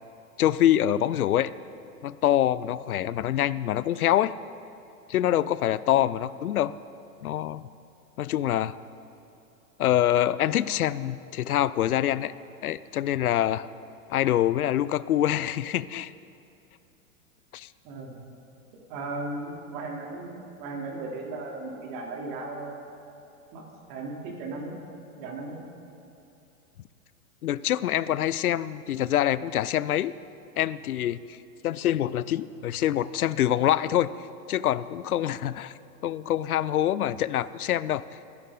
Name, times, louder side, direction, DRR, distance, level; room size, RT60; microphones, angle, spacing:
voice 1, 0.4-1.5 2.0-4.3 5.1-6.7 7.2-7.6 8.2-8.8 9.8-12.3 12.6-13.7 14.1-16.1 17.5-17.7 27.4-30.1 30.6-31.4 31.6-34.1 34.5-35.7 36.0-38.0, left 12 dB, 75° left, 17 dB, 0.6 m, -25 dB
voice 2, 17.8-18.2 18.9-22.8 23.5-23.6 23.9-24.7 25.2-25.6, right 3 dB, 45° right, -1 dB, 3.3 m, -36 dB
25.5 x 11.0 x 3.9 m, 2.8 s
hypercardioid pair, 105°, 44 cm